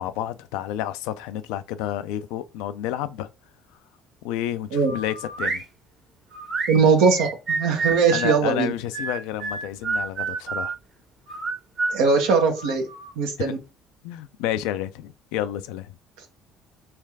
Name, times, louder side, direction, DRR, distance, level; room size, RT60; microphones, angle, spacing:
voice 1, 0.0-3.3 4.2-5.6 8.1-10.7 13.4-13.5 14.0-15.9, left 12 dB, 75° left, 0.4 m, -30 dB
sound 1, 4.8-5.6 6.3-8.4 8.9-10.7 11.3-13.1, right 4 dB, 50° right, 1.6 m, -29 dB
voice 2, 6.7-8.7 11.9-12.9 13.2-13.6, right 5 dB, 75° right, 1.0 m, -20 dB
3.3 x 3.2 x 3.4 m
hypercardioid pair, 60°, 0 cm